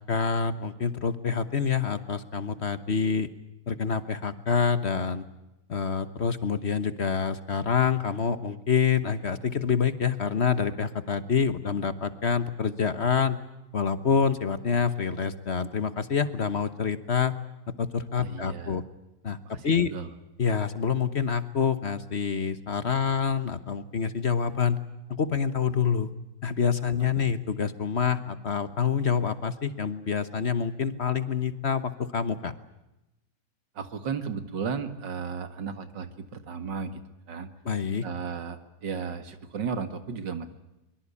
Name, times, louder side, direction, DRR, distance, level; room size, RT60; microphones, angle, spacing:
voice 1, 0.1-3.3 3.7-5.2 5.7-13.4 13.7-17.3 17.8-18.8 19.2-19.4 19.6-19.9 20.4-24.8 25.1-26.1 26.4-32.5 37.6-38.0, left 6 dB, 40° left, 13 dB, 1.2 m, -27 dB
voice 2, 18.2-18.9 19.4-20.1 27.2-27.3 33.8-37.0 37.3-37.5 38.0-40.5, right 6 dB, 90° right, 10 dB, 2.5 m, -34 dB
23.0 x 23.0 x 8.5 m, 0.95 s
omnidirectional pair, 1.9 m